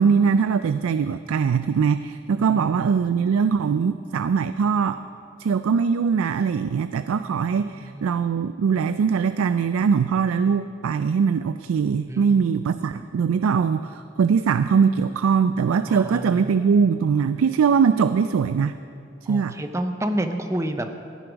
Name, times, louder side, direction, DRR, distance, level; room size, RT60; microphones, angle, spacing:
voice 1, 0.0-5.0 5.4-18.8 19.3-19.6, right 6 dB, 90° right, 12 dB, 0.3 m, -21 dB
voice 2, 2.4-2.9 7.5-8.0 12.1-12.6 12.9-13.1 15.9-16.6 19.3-20.9, right 1 dB, 15° right, 7 dB, 0.6 m, -30 dB
15.0 x 9.8 x 5.1 m, 2.6 s
head